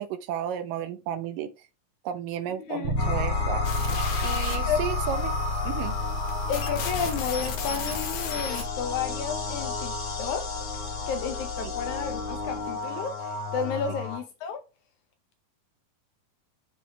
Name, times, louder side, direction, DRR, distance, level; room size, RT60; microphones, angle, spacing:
voice 1, 0.0-1.5 2.0-3.6 4.2-5.3 5.6-6.0 11.6-11.7, right 10 dB, 75° right, 2.4 m, -33 dB
voice 2, 2.6-2.9 4.4-4.9 6.5-14.6, left 6 dB, 70° left, 1.9 m, -32 dB
Bass guitar, 2.8-12.7, left 2 dB, 40° right, 2.3 m, -33 dB
sound 1, 3.0-14.2, left 3 dB, 50° left, 2.7 m, -33 dB
sound 2, 3.6-8.6, left 6 dB, 85° left, 3.1 m, -36 dB
7.4 x 4.9 x 3.4 m
omnidirectional pair, 4.0 m